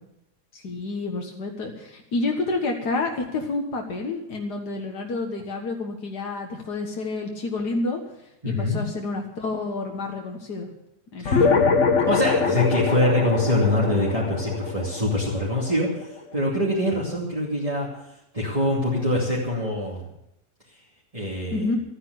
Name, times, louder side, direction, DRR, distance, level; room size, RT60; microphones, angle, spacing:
voice 1, 0.5-8.0 8.5-10.7 11.1-11.6 21.5-21.8, left 3 dB, 75° left, 2 dB, 2.1 m, -29 dB
voice 2, 8.4-8.8 11.2-11.5 12.1-17.9 18.3-20.0 21.1-21.7, left 1 dB, 20° right, -6 dB, 2.7 m, -24 dB
sound 1, 11.2-16.1, left 4 dB, 50° left, 1.8 m, -23 dB
13.5 x 9.7 x 8.1 m, 0.83 s
omnidirectional pair, 1.7 m